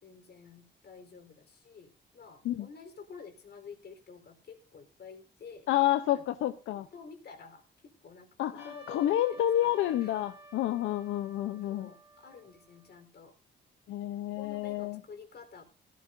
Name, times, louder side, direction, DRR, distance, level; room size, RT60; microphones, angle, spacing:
voice 1, 0.0-5.7 6.1-6.3 6.7-8.3 8.6-10.2 11.6-13.4 14.4-15.6, left 5 dB, 55° left, 6 dB, 4.0 m, -50 dB
voice 2, 5.7-6.9 8.4-11.9 13.9-15.0, left 13 dB, 85° left, 11 dB, 0.8 m, -29 dB
Trumpet, 8.6-13.0, right 2 dB, 15° right, 3.2 m, -54 dB
17.0 x 14.5 x 2.6 m, 0.35 s
cardioid pair, 90°, 20 cm